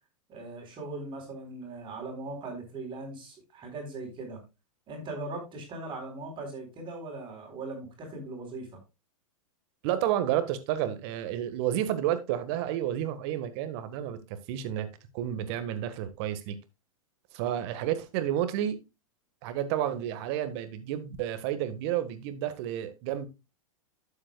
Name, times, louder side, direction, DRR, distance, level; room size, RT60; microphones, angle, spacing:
voice 1, 0.3-4.4 4.9-8.8, right 2 dB, 30° right, 4.0 m, -39 dB
voice 2, 9.8-14.2 14.5-14.9 15.1-16.5 17.3-18.8 19.4-23.3, right 11 dB, 50° right, 1.6 m, -30 dB
11.5 x 7.5 x 2.3 m
hypercardioid pair, 105°, 18 cm